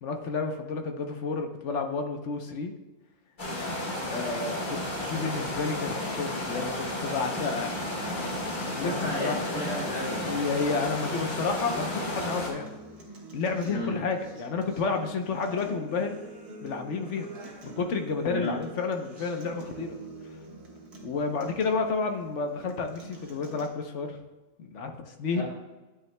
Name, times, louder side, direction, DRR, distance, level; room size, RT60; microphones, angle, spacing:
voice 1, 0.0-2.7 4.1-7.7 8.7-8.9 9.2-9.4 10.2-12.7 13.3-16.2 16.6-17.3 17.6-20.0 21.0-24.2 24.6-25.4, left 4 dB, 55° left, 5 dB, 1.0 m, -30 dB
sound 1, 3.4-12.5, left 1 dB, 35° left, 1.5 m, -33 dB
Acoustic guitar, 7.7-23.7, right 2 dB, 80° right, 2.0 m, -45 dB
voice 2, 8.7-10.6 13.6-14.0 18.3-18.6 25.3-25.4, left 1 dB, 80° left, -6 dB, 2.2 m, -34 dB
10.5 x 9.2 x 2.2 m, 1.2 s
omnidirectional pair, 1.6 m